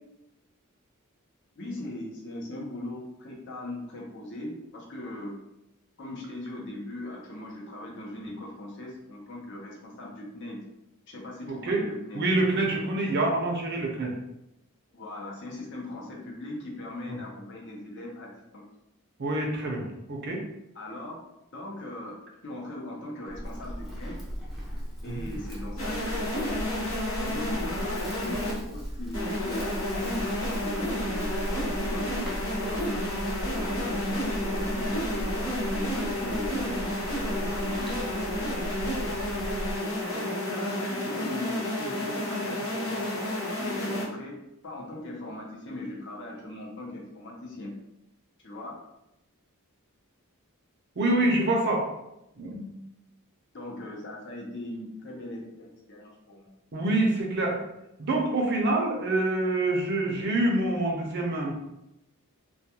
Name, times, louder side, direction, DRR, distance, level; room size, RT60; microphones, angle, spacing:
voice 1, 1.6-5.3 6.0-10.6 11.1-12.2 14.9-18.6 20.7-21.2 21.5-24.2 25.0-26.6 27.2-33.1 33.7-36.9 37.2-38.7 40.1-47.8 48.4-48.7 53.5-56.5, left 1 dB, 55° left, -2 dB, 0.6 m, -39 dB
voice 2, 12.1-14.1 19.2-19.8 20.1-20.4 25.1-25.2 51.0-51.8 52.4-52.7 56.7-57.6 58.0-61.5, right 2 dB, 50° right, 0 dB, 0.5 m, -26 dB
Livestock farm animals working animals, 23.3-39.8, equal, ahead, 0.5 m, -36 dB
sound 1, 25.8-28.5 29.1-44.0, left 1 dB, 75° left, 0.9 m, -31 dB
2.3 x 2.2 x 2.8 m, 0.87 s
head